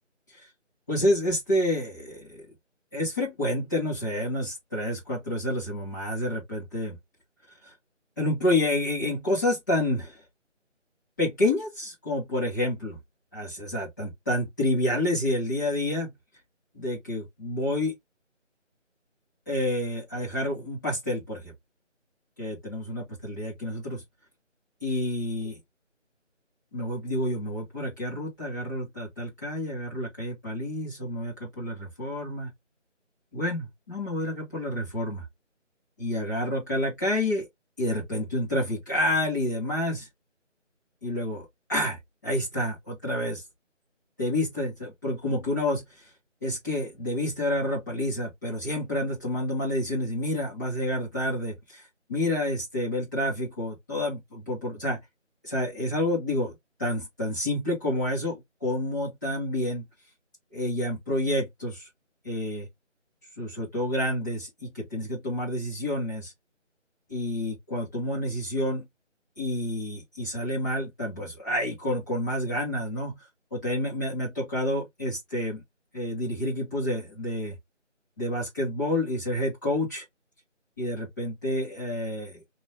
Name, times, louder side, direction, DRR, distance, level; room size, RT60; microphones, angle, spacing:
voice 1, 0.9-2.4 2.9-7.0 7.6-7.7 8.2-10.2 11.2-13.0 13.3-16.1 16.7-18.0 19.5-21.5 22.4-24.0 24.8-25.6 26.7-32.5 33.3-35.3 36.0-37.5 37.8-40.1 41.0-43.4 44.2-46.1 46.4-51.8 52.1-55.0 55.4-59.9 60.5-61.9 62.2-62.7 63.4-66.3 67.1-68.9 69.4-73.2 73.5-75.6 75.9-77.6 78.2-80.0 80.8-82.4, left 1 dB, 15° left, 1.9 m, -29 dB
4.4 x 3.1 x 2.9 m
figure-of-eight pair, 160°, 37 cm